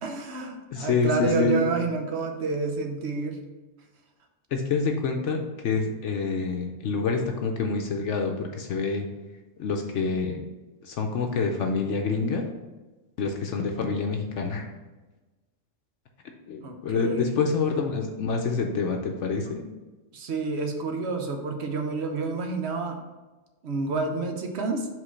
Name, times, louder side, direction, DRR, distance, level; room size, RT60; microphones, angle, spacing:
voice 1, 0.0-3.4 16.6-17.3 20.1-23.0 23.6-24.9, right 3 dB, 60° right, 4 dB, 1.1 m, -29 dB
voice 2, 0.7-1.6 4.5-9.1 9.6-10.4 10.8-12.5 13.2-14.7 16.5-19.6, left 4 dB, 65° left, 3 dB, 0.9 m, -27 dB
4.9 x 3.9 x 5.6 m, 1.2 s
omnidirectional pair, 1.4 m